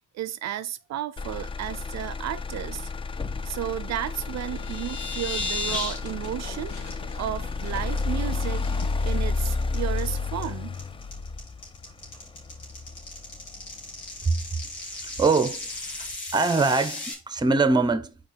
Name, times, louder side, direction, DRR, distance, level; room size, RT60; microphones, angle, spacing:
voice 1, 0.1-2.9 3.4-6.7 7.2-8.7 9.0-10.8, right 12 dB, 60° right, 0.5 m, -33 dB
Motor vehicle (road), 1.2-15.2 15.6-16.2, left 4 dB, 20° left, 0.3 m, -31 dB
sound 1, 4.3-6.0 6.3-6.5 6.9-7.0 7.4-7.6 8.0-8.4 8.8-17.1, left 2 dB, 85° left, 2.9 m, -35 dB
sound 2, 4.3-9.5, left 4 dB, 70° left, 2.0 m, -45 dB
voice 2, 14.9-15.7 16.0-16.1 16.3-18.2, right 3 dB, 15° right, 0.7 m, -23 dB
5.2 x 4.4 x 4.4 m
cardioid pair, 90°, 30 cm